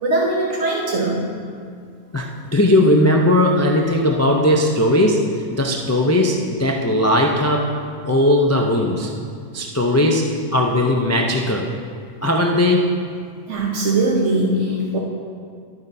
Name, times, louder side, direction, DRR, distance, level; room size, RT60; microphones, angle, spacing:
voice 1, 0.0-1.3 13.5-15.0, right 2 dB, 85° right, -2 dB, 1.2 m, -20 dB
voice 2, 2.1-7.8 8.0-9.1 9.5-11.7 12.2-13.0, left 1 dB, 25° left, 0 dB, 0.4 m, -18 dB
13.0 x 9.4 x 2.7 m, 2.2 s
omnidirectional pair, 1.2 m